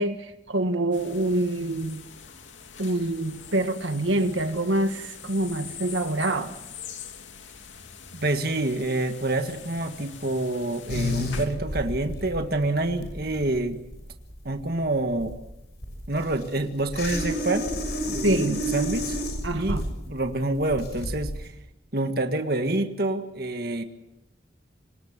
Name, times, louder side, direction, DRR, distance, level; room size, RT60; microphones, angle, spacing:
voice 1, 0.0-2.0 2.8-6.5 18.2-18.6 19.4-19.9, right 1 dB, 90° right, 7 dB, 1.7 m, -26 dB
sound 1, 0.9-11.4, left 7 dB, 85° left, 2.7 m, -44 dB
voice 2, 8.1-13.8 14.5-15.3 16.1-17.7 18.1-19.2 19.5-19.8 20.1-21.5 21.9-23.8, right 2 dB, 50° right, 6 dB, 1.8 m, -27 dB
sound 2, 10.9-21.5, equal, 55° left, 6.4 m, -31 dB
26.5 x 19.5 x 7.5 m, 0.87 s
head